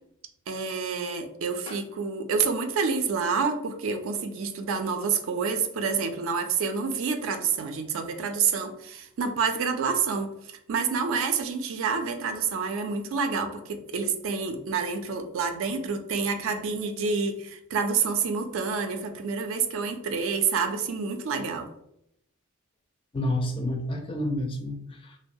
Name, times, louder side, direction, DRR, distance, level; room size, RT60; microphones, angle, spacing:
voice 1, 0.5-21.7, right 5 dB, 70° right, 7 dB, 0.4 m, -28 dB
voice 2, 23.1-25.2, left 1 dB, 25° left, 3 dB, 0.4 m, -29 dB
2.9 x 2.0 x 2.6 m, 0.77 s
head